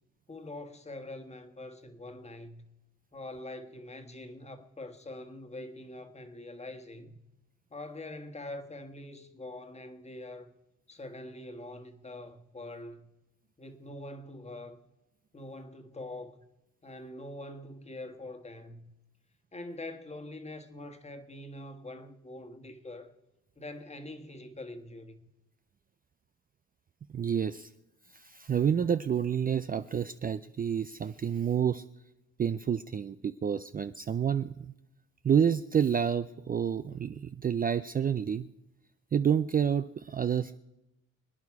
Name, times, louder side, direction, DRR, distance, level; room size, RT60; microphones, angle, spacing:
voice 1, 0.3-2.6 3.1-7.2 7.7-10.5 10.9-13.1 13.6-14.8 15.3-16.5 16.8-18.8 19.5-23.1 23.5-25.2, left 1 dB, 20° left, 1.5 m, -44 dB
voice 2, 27.1-27.7 28.1-31.8 32.4-34.7 35.2-38.5 39.1-40.6, right 8 dB, 30° right, 0.4 m, -29 dB
26.0 x 9.8 x 4.8 m
cardioid pair, 90°, 30 cm